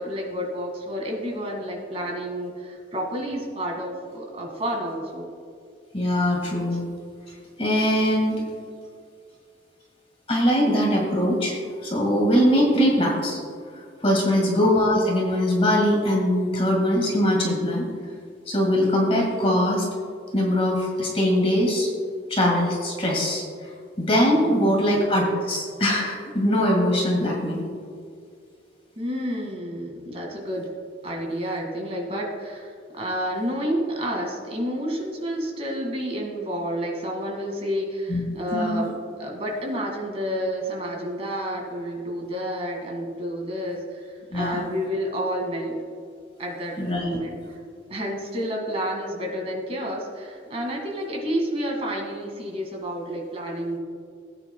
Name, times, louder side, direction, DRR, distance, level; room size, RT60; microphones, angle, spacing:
voice 1, 0.0-5.3 12.6-12.8 14.2-14.5 24.4-25.0 29.0-30.7 31.0-45.8 46.4-47.4 47.9-53.8, equal, 30° right, 0 dB, 1.9 m, -30 dB
voice 2, 5.9-6.8 7.6-8.4 10.3-11.6 11.8-13.4 14.0-17.9 18.5-19.9 20.3-21.9 22.3-23.4 24.0-27.6 38.1-38.2 38.5-38.9 44.3-44.6 46.8-47.2, equal, 30° left, -2 dB, 1.8 m, -21 dB
17.5 x 8.9 x 2.2 m, 2.2 s
head